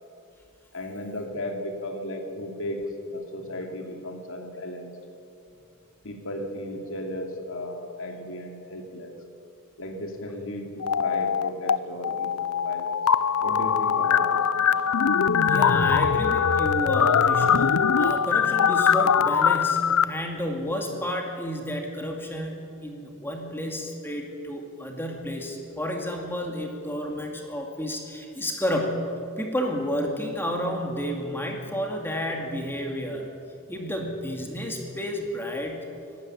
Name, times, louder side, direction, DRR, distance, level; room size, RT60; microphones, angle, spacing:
voice 1, 0.7-4.9 6.0-9.2 9.8-13.0 13.4-14.7, left 1 dB, 65° left, 3 dB, 2.8 m, -35 dB
sound 1, 10.8-11.8 12.0-20.0, left 7 dB, 85° left, 0.6 m, -22 dB
voice 2, 15.3-29.1 29.4-33.3 33.7-35.9, equal, 10° left, 1 dB, 2.3 m, -31 dB
24.0 x 12.5 x 9.8 m, 2.6 s
head